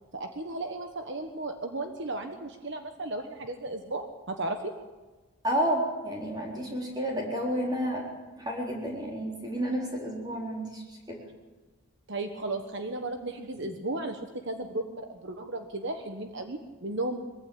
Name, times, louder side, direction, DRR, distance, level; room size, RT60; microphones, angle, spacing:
voice 1, 0.1-4.7 12.1-17.2, right 2 dB, 55° right, 5 dB, 1.4 m, -35 dB
voice 2, 5.4-8.1 8.4-11.2, equal, 20° right, -1 dB, 4.0 m, -31 dB
21.5 x 15.5 x 8.7 m, 1.2 s
head